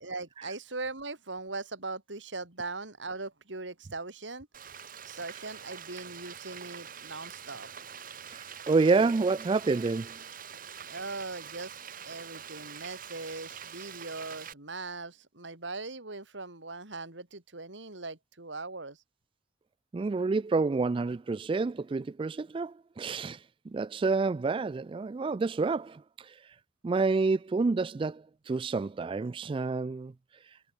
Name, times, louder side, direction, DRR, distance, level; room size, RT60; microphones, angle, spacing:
voice 1, 0.0-4.5 5.0-7.7 10.9-11.8 12.1-19.0, right 3 dB, 90° right, 3.8 m, -40 dB
Frying (food), 4.5-14.5, right 8 dB, 50° right, 3.1 m, -45 dB
voice 2, 8.3-10.2 19.9-23.4 23.7-26.4 26.8-30.1, right 4 dB, 30° right, 0.3 m, -28 dB
head